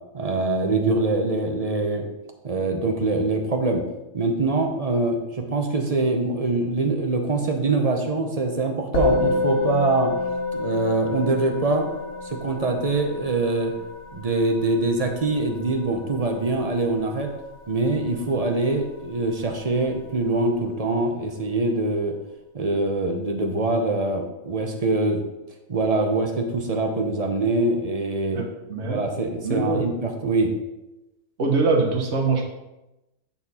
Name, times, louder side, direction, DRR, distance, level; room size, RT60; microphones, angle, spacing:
voice 1, 0.1-2.1 2.4-3.8 4.1-10.1 10.5-11.9 12.2-13.7 14.1-17.3 17.7-22.1 22.5-25.2 25.7-28.4 28.8-30.5, right 2 dB, 35° right, 3 dB, 0.7 m, -24 dB
Musical instrument, 8.9-18.5, left 3 dB, 40° left, 1.6 m, -29 dB
voice 2, 28.3-29.0 29.4-29.9 31.4-32.5, right 4 dB, 50° right, 0 dB, 1.4 m, -23 dB
9.0 x 4.3 x 4.3 m, 0.98 s
omnidirectional pair, 1.6 m